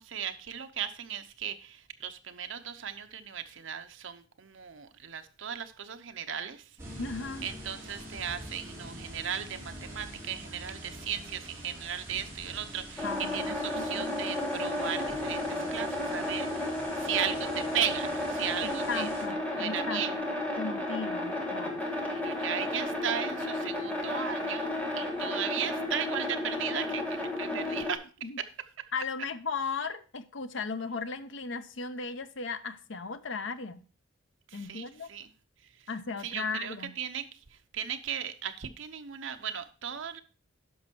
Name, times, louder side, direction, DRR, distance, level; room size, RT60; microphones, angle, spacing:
voice 1, 0.0-6.7 7.4-19.1 19.6-20.2 22.0-28.0 28.4-28.5 28.8-28.9 34.5-35.3 36.2-37.4 37.7-40.2, right 8 dB, 70° right, 0.8 m, -36 dB
sound 1, 6.8-19.2, right 1 dB, 15° right, 3.5 m, -45 dB
voice 2, 7.0-7.5 13.0-14.3 18.6-20.0 20.6-21.8 27.5-27.6 28.2-28.4 28.9-33.8 34.5-35.1 35.9-36.9, left 4 dB, 65° left, 0.7 m, -36 dB
sound 2, 13.0-27.9, left 1 dB, 5° left, 1.5 m, -33 dB
10.0 x 6.1 x 4.5 m
head